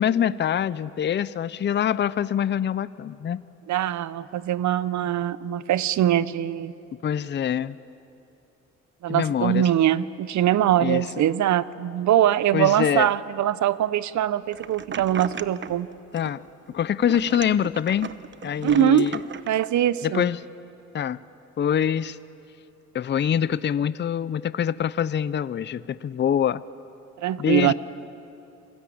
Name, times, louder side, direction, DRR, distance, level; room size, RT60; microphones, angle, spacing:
voice 1, 0.0-3.4 7.0-7.8 9.1-9.7 10.8-11.0 12.5-13.1 16.1-16.4 16.7-18.1 18.4-19.2 20.0-20.4 20.9-21.2 21.6-22.2 22.9-26.6 27.4-27.7, left 9 dB, 35° left, 17 dB, 0.6 m, -24 dB
voice 2, 3.7-6.7 9.0-15.9 18.6-19.1 19.5-20.2 27.2-27.7, right 11 dB, 70° right, 17 dB, 0.8 m, -22 dB
sound 1, 14.5-15.8 16.2-16.7 17.0-19.5, right 7 dB, 40° right, 0.9 m, -37 dB
26.5 x 20.0 x 8.7 m, 2.8 s
cardioid pair, 90°, 30 cm